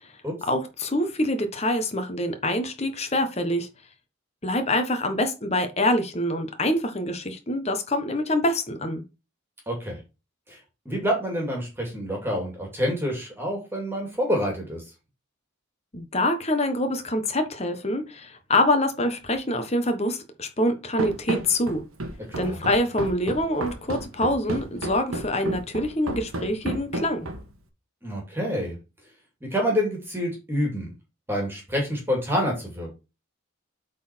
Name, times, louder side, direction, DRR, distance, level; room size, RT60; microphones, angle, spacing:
voice 1, 0.5-3.7 4.4-9.0 15.9-21.8 22.4-27.3, left 1 dB, 30° left, 1.2 m, -25 dB
voice 2, 9.7-10.0 10.5-10.6 10.9-14.8 22.4-22.6 28.0-28.8 29.4-30.9 31.3-32.9, equal, 10° right, 2.4 m, -27 dB
Run, 21.0-27.6, right 1 dB, 90° right, 1.5 m, -32 dB
8.1 x 4.1 x 4.4 m
head